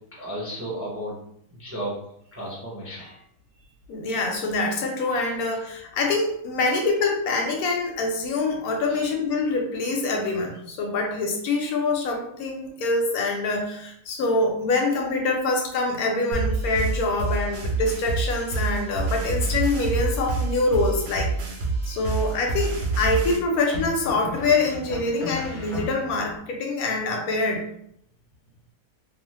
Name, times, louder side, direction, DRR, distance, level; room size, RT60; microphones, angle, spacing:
voice 1, 0.1-1.2 1.5-2.0 2.3-3.2 8.9-9.0, right 1 dB, 15° right, -6 dB, 0.4 m, -34 dB
voice 2, 3.9-21.3 21.9-27.7, left 3 dB, 75° left, 2 dB, 1.0 m, -25 dB
sound 1, 16.3-23.4, right 3 dB, 65° right, 0.6 m, -27 dB
sound 2, 21.0-21.6 23.7-26.4, left 2 dB, 50° left, 0.5 m, -36 dB
2.6 x 2.3 x 3.1 m, 0.71 s
omnidirectional pair, 1.7 m